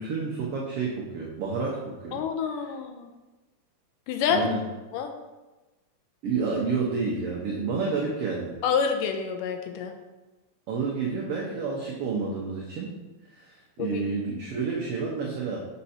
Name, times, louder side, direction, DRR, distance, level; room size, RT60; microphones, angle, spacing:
voice 1, 0.0-2.2 2.6-2.7 4.3-4.6 6.2-8.6 10.7-12.9 13.3-15.7, right 4 dB, 75° right, -3 dB, 1.3 m, -29 dB
voice 2, 2.1-3.1 4.1-4.5 4.9-5.1 8.6-9.9 13.8-14.0, left 6 dB, 85° left, 6 dB, 2.2 m, -27 dB
6.8 x 5.3 x 4.2 m, 1.1 s
omnidirectional pair, 3.8 m